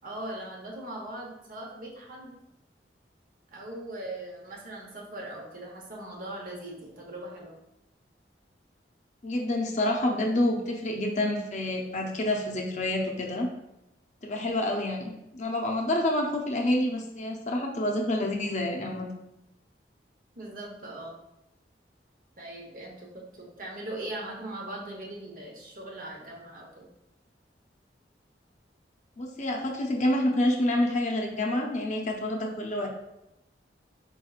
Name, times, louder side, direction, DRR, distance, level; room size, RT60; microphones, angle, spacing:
voice 1, 0.0-2.3 3.5-7.6 20.3-21.2 22.4-26.9, right 1 dB, 50° right, -1 dB, 1.0 m, -40 dB
voice 2, 9.2-13.5 14.2-19.1 29.2-32.9, left 1 dB, 40° left, 1 dB, 0.6 m, -28 dB
4.7 x 4.3 x 2.4 m, 0.90 s
head